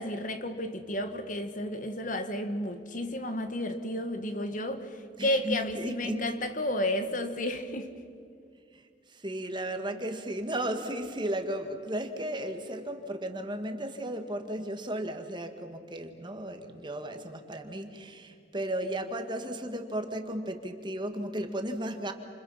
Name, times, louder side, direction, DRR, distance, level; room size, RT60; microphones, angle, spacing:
voice 1, 0.0-8.0, left 1 dB, 45° left, 1.7 m, -32 dB
voice 2, 5.2-6.4 8.7-8.8 9.1-22.1, right 1 dB, 25° right, 1.9 m, -35 dB
29.0 x 27.5 x 5.8 m
head